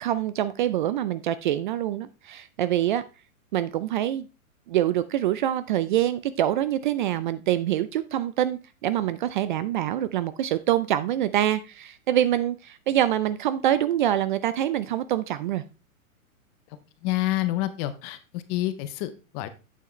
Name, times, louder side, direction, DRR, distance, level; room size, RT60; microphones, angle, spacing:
voice 1, 0.0-3.0 3.5-4.3 4.7-15.6, right 12 dB, 35° right, 14 dB, 0.4 m, -25 dB
voice 2, 17.0-19.5, left 16 dB, 25° left, 12 dB, 0.5 m, -28 dB
8.5 x 6.9 x 3.1 m, 0.30 s
hypercardioid pair, 130°, 43 cm